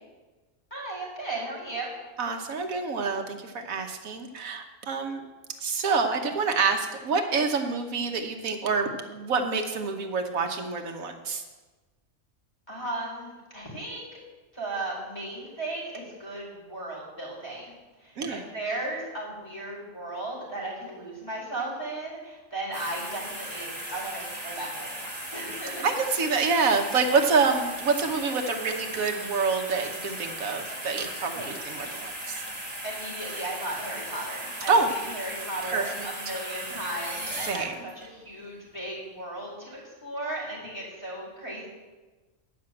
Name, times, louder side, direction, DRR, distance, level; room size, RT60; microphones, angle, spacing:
voice 1, 0.7-1.9 12.7-14.1 14.5-25.9 28.0-28.1 31.3-31.5 32.8-41.7, right 2 dB, 15° left, -5 dB, 4.2 m, -36 dB
voice 2, 2.2-5.2 5.6-11.4 18.2-18.4 25.8-32.4 34.7-34.9 35.6-36.1 37.3-37.9, right 4 dB, 75° right, 4 dB, 1.5 m, -27 dB
sound 1, 22.7-38.0 38.5-38.7, right 1 dB, 5° right, 2.9 m, -37 dB
10.0 x 5.9 x 7.6 m, 1.3 s
omnidirectional pair, 1.5 m